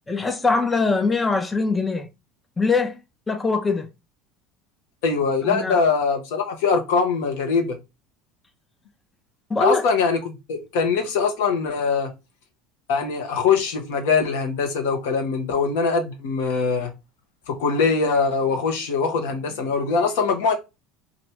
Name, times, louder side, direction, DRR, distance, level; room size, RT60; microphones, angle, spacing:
voice 1, 0.1-2.1 2.6-3.0 3.3-3.9 5.4-5.8 9.5-9.9, left 4 dB, 20° left, 0.5 m, -22 dB
voice 2, 5.0-7.8 9.6-12.1 12.9-16.9 17.5-20.5, left 5 dB, 75° left, 0.9 m, -22 dB
2.9 x 2.5 x 3.3 m
hypercardioid pair, 85°, 0 cm